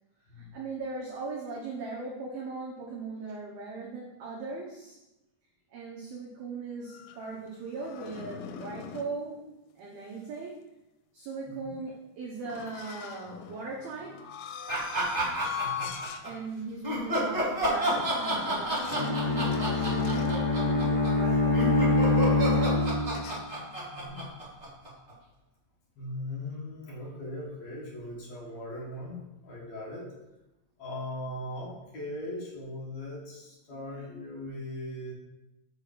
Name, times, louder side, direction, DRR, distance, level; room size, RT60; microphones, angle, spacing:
voice 1, 0.3-5.0 5.7-9.5 9.8-10.6 11.1-14.3 15.8-15.9 16.2-22.9, right 4 dB, 85° right, -3 dB, 2.1 m, -39 dB
sound 1, 6.9-9.2 12.5-16.3 16.7-16.9 17.9-20.5 23.1-23.4, left 7 dB, 85° left, 3.2 m, -41 dB
sound 2, 14.7-16.3 16.8-25.1, right 1 dB, 40° right, 0.5 m, -30 dB
voice 2, 15.6-15.9 23.9-24.2 26.0-30.1 30.8-35.1, left 1 dB, 65° left, -5 dB, 1.7 m, -39 dB
Bowed string instrument, 18.9-23.3, left 2 dB, 50° left, 2.4 m, -25 dB
6.9 x 5.0 x 6.1 m, 0.97 s
omnidirectional pair, 5.9 m